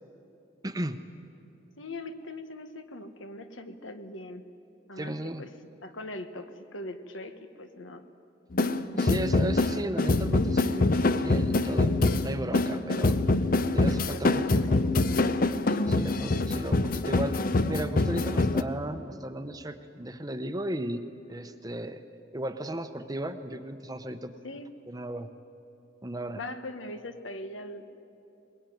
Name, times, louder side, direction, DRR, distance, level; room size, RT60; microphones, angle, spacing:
voice 1, 0.6-1.0 5.0-5.4 8.9-12.0 12.2-13.2 13.7-14.4 15.9-21.0 21.3-22.0 22.3-24.3 24.9-25.3 26.0-26.4, right 1 dB, 20° right, 9 dB, 0.9 m, -35 dB
voice 2, 1.8-4.5 4.9-5.5 5.8-8.0 14.1-14.7 14.9-15.5 24.4-24.7 26.4-27.9, left 2 dB, 80° left, 8 dB, 1.4 m, -41 dB
sound 1, 8.5-18.6, left 2 dB, 45° left, 0.7 m, -25 dB
21.5 x 20.5 x 9.3 m, 2.8 s
head